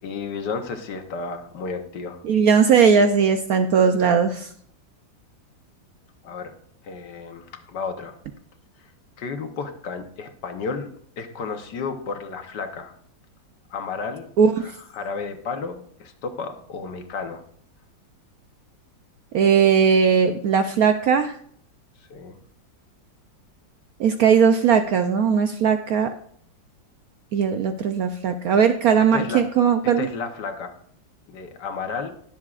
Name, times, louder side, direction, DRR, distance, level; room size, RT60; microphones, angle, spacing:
voice 1, 0.0-2.2 6.2-6.5 6.8-8.1 9.2-10.9 11.2-12.9 13.7-17.4 22.1-22.4 29.1-29.4 30.0-30.8 31.3-32.1, left 5 dB, 65° left, 6 dB, 1.6 m, -32 dB
voice 2, 2.2-4.5 14.4-14.7 19.3-21.4 24.0-26.1 27.3-30.1, right 6 dB, 70° right, 7 dB, 0.9 m, -18 dB
20.5 x 7.3 x 2.4 m, 0.62 s
omnidirectional pair, 2.0 m